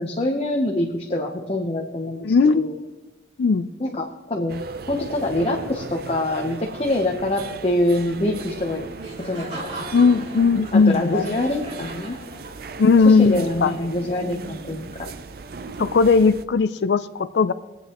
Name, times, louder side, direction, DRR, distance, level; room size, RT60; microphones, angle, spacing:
voice 1, 0.0-2.3 2.5-2.7 3.8-4.6 4.9-8.8 9.2-9.8 10.7-12.2 13.1-14.9, left 1 dB, 35° left, 1 dB, 0.9 m, -25 dB
voice 2, 2.2-2.9 3.4-3.7 9.9-11.4 12.8-13.7 15.8-17.5, left 4 dB, 70° left, 14 dB, 0.4 m, -18 dB
sound 1, 4.5-16.4, right 3 dB, 55° right, 0.5 m, -37 dB
Laughter, 9.0-12.9, right 1 dB, 35° right, 4.0 m, -38 dB
22.5 x 8.4 x 3.0 m, 1.1 s
head